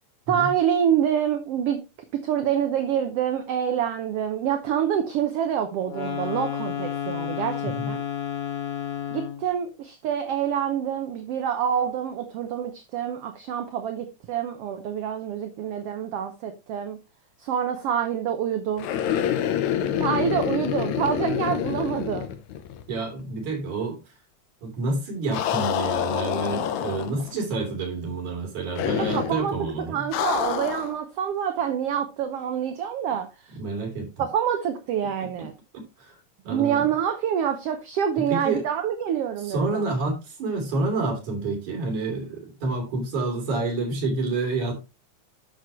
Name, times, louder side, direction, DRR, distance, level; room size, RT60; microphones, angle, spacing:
voice 1, 0.3-1.8 2.1-8.0 9.1-17.0 17.4-18.9 19.6-22.3 29.0-29.5 29.9-33.6 34.2-35.5 36.5-39.8, right 9 dB, 65° right, 1.6 m, -26 dB
sound 1, 5.8-9.5, left 9 dB, 35° left, 1.6 m, -31 dB
voice 2, 7.6-8.0 22.9-24.0 24.6-30.1 33.6-34.1 36.1-36.2 36.4-36.8 38.2-38.6 39.4-44.8, right 3 dB, 80° right, 4.4 m, -28 dB
sound 2, 18.8-22.9 23.2-23.3 25.3-27.3 28.8-29.4 30.1-31.0, left 10 dB, 75° left, 2.1 m, -27 dB
10.5 x 6.6 x 3.0 m
omnidirectional pair, 3.4 m